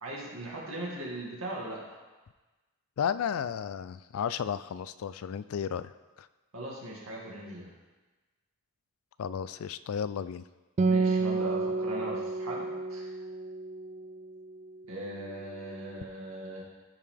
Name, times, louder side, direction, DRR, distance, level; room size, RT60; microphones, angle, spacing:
voice 1, 0.0-2.0 6.5-7.7 10.9-13.1 14.9-16.6, right 1 dB, 65° right, -4 dB, 2.3 m, -39 dB
voice 2, 3.0-5.9 6.2-6.3 9.2-10.4, left 7 dB, 70° left, 15 dB, 0.3 m, -33 dB
Acoustic guitar, 10.8-14.5, right 3 dB, 30° right, 0.3 m, -30 dB
14.0 x 5.6 x 3.4 m, 1.2 s
head